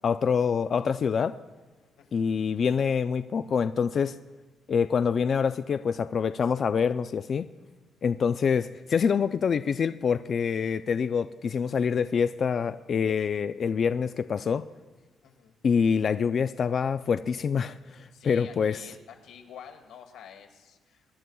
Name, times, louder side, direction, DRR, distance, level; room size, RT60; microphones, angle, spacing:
voice 1, 0.0-1.3 2.1-4.1 4.7-7.5 8.0-14.6 15.6-18.8, left 6 dB, 50° left, 11 dB, 0.4 m, -26 dB
voice 2, 15.2-15.5 18.1-21.1, left 8 dB, 85° left, 4 dB, 1.5 m, -49 dB
24.5 x 11.0 x 2.3 m, 1.3 s
cardioid pair, 90°, 0 cm